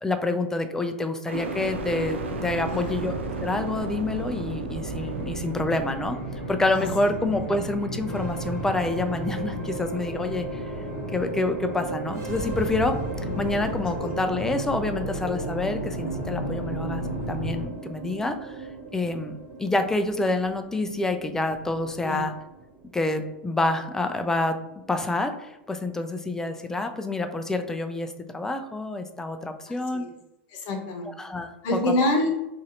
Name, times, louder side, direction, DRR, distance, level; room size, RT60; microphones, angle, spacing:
voice 1, 0.0-6.2 6.5-10.6 11.1-13.0 13.4-18.6 18.9-22.3 22.9-24.5 24.9-30.0 31.2-31.5, left 2 dB, 10° left, 7 dB, 0.3 m, -27 dB
sound 1, 1.3-15.3 15.8-16.5, right 3 dB, 85° right, 0.4 m, -36 dB
sound 2, 4.9-17.7, equal, 80° left, 0.7 m, -35 dB
sound 3, 8.1-26.6, right 4 dB, 45° right, 0.9 m, -38 dB
voice 2, 29.7-30.1 30.5-31.1 31.6-32.3, left 1 dB, 50° left, 3 dB, 0.8 m, -27 dB
3.0 x 2.7 x 2.6 m, 0.91 s
hypercardioid pair, 100°, 6 cm